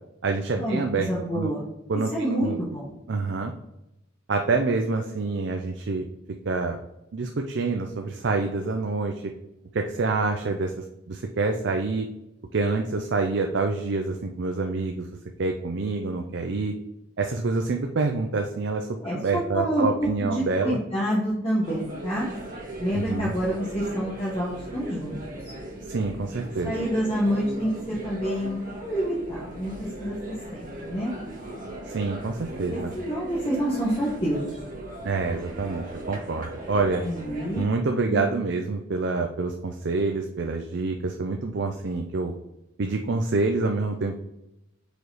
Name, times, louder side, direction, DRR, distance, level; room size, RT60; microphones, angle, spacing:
voice 1, 0.2-1.5 1.9-2.6 3.1-3.5 4.3-6.1 6.5-6.8 7.1-9.2 9.7-10.7 11.1-12.1 12.5-15.1 15.4-16.7 17.2-20.8 22.9-23.3 25.9-26.7 31.9-32.9 35.0-37.0 37.5-42.3 42.8-44.2, right 3 dB, 55° right, 4 dB, 0.5 m, -27 dB
voice 2, 1.1-1.6 2.1-2.9 19.0-22.3 22.8-25.2 26.6-29.7 30.0-31.1 32.7-34.5 37.0-37.6 38.1-38.2, equal, 25° left, -8 dB, 1.5 m, -27 dB
sound 1, 21.6-37.7, right 1 dB, 40° right, 1.7 m, -38 dB
5.0 x 4.7 x 4.0 m, 0.88 s
head